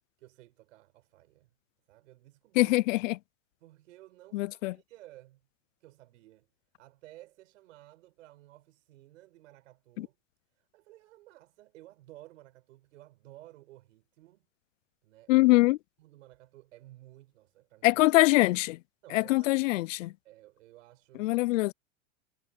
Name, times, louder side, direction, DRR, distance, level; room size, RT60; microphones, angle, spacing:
voice 1, 0.2-1.5 1.9-2.8 3.6-5.4 5.8-6.5 6.8-10.2 10.5-14.5 15.0-15.5 16.0-18.0 19.0-21.3, right 16 dB, 80° right, 5.4 m, -55 dB
voice 2, 2.6-3.1 4.3-4.7 10.0-10.1 15.3-15.8 17.8-18.8 19.1-20.1 21.2-21.7, left 21 dB, 80° left, 0.6 m, -23 dB
supercardioid pair, 145°, 37 cm